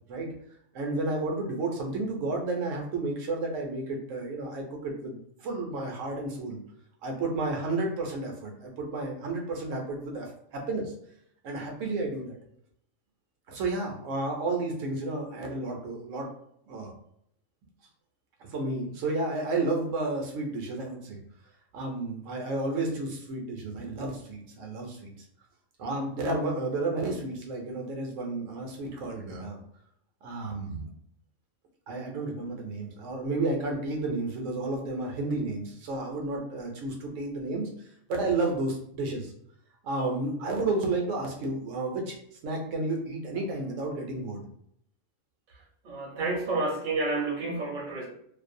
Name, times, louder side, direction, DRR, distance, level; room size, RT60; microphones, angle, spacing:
voice 1, 0.7-6.6 7.0-10.9 11.4-12.4 13.5-16.3 16.7-16.9 18.4-21.2 21.7-25.1 25.8-29.6 30.2-30.9 31.9-39.3 39.8-42.2 42.4-44.4, right 2 dB, 75° right, 1 dB, 0.9 m, -32 dB
voice 2, 45.5-48.1, right 3 dB, 50° right, -1 dB, 0.7 m, -30 dB
2.5 x 2.0 x 2.5 m, 0.71 s
omnidirectional pair, 1.3 m